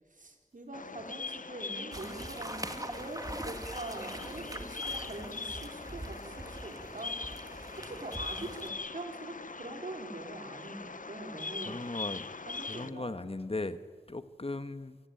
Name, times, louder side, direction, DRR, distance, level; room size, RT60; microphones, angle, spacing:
voice 1, 0.1-7.1 7.8-11.9 12.5-13.2, right 2 dB, 75° right, 4.1 m, -44 dB
Bird vocalization bird call bird song, 0.7-12.9, left 4 dB, 80° left, 0.9 m, -42 dB
sound 1, 1.9-8.7, right 1 dB, 25° right, 2.0 m, -43 dB
voice 2, 11.6-12.3 12.5-13.8 14.1-15.0, left 2 dB, 45° left, 1.3 m, -37 dB
27.5 x 19.0 x 9.2 m
wide cardioid pair, 55°, 14 cm